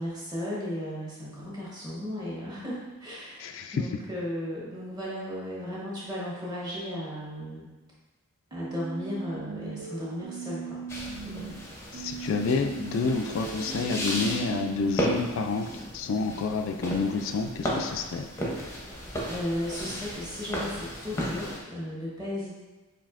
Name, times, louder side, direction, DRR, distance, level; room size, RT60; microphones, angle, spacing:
voice 1, 0.0-3.5 3.7-7.6 8.5-10.8 11.2-11.5 18.6-19.0 19.3-22.5, left 1 dB, 20° right, -6 dB, 1.1 m, -35 dB
voice 2, 3.4-3.9 11.9-18.3, left 4 dB, 60° left, 7 dB, 0.3 m, -29 dB
sound 1, 8.5-11.5 11.9-14.9, right 5 dB, 85° right, 0.5 m, -39 dB
sound 2, 10.9-21.6, equal, 10° left, 0.6 m, -35 dB
7.2 x 2.7 x 2.5 m, 1.2 s
head